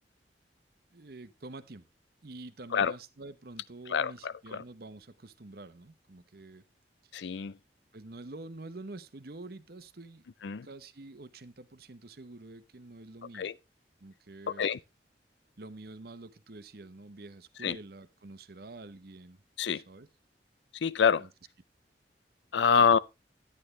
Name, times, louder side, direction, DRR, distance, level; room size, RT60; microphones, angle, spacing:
voice 1, 0.9-1.9 2.2-6.6 7.0-7.1 7.9-10.2 10.6-13.5 14.0-14.7 15.6-19.4 19.7-20.1 21.2-21.3 22.7-22.9, right 2 dB, 60° right, 0.9 m, -47 dB
voice 2, 3.9-4.6 7.1-7.6 10.4-10.7 13.3-13.5 14.5-14.8 17.6-17.8 19.6-19.8 20.8-21.3 22.5-23.0, left 6 dB, 90° left, 0.5 m, -26 dB
11.0 x 9.6 x 3.2 m
head